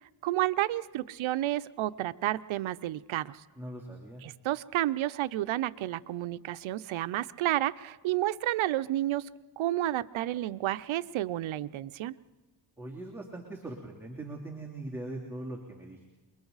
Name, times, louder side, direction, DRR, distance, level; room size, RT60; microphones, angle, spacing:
voice 1, 0.2-3.4 4.2-9.3 9.6-12.1, right 14 dB, 90° right, 16 dB, 0.6 m, -31 dB
voice 2, 3.6-4.2 12.8-16.1, right 2 dB, 5° right, -3 dB, 3.1 m, -41 dB
28.5 x 22.5 x 4.0 m, 1.2 s
cardioid pair, 70°, 46 cm